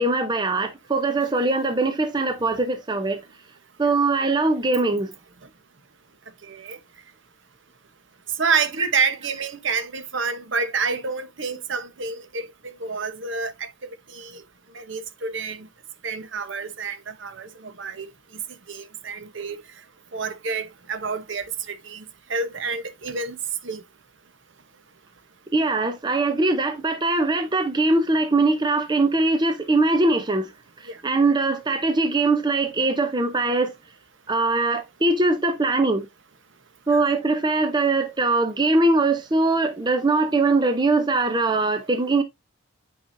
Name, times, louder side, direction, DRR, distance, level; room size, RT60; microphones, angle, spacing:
voice 1, 0.0-3.2 3.8-5.1 25.5-30.4 31.0-33.7 34.3-36.0 36.9-42.2, right 2 dB, 20° right, 0.6 m, -21 dB
voice 2, 6.4-6.8 8.4-13.7 14.1-14.4 14.7-15.7 16.0-18.1 18.7-19.6 20.1-22.0 22.3-23.4 23.6-23.8 30.9-31.0 36.9-37.0, right 5 dB, 60° right, 1.0 m, -28 dB
9.1 x 4.9 x 2.6 m
head